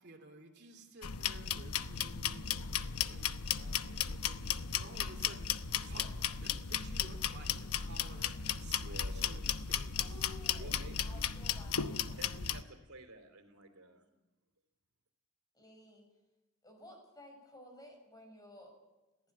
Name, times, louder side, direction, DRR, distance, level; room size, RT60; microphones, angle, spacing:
voice 1, 0.0-10.8, right 2 dB, 50° right, 3 dB, 3.0 m, -55 dB
sound 1, 1.0-12.6, left 8 dB, 80° left, 0.9 m, -35 dB
voice 2, 3.8-4.1 8.8-9.5 10.6-11.3 12.0-14.1, right 2 dB, 75° right, 6 dB, 3.3 m, -52 dB
voice 3, 10.0-10.7 11.0-12.2 15.5-16.1 16.6-18.7, left 1 dB, 15° left, 3 dB, 6.1 m, -54 dB
20.5 x 15.5 x 8.7 m, 1.0 s
head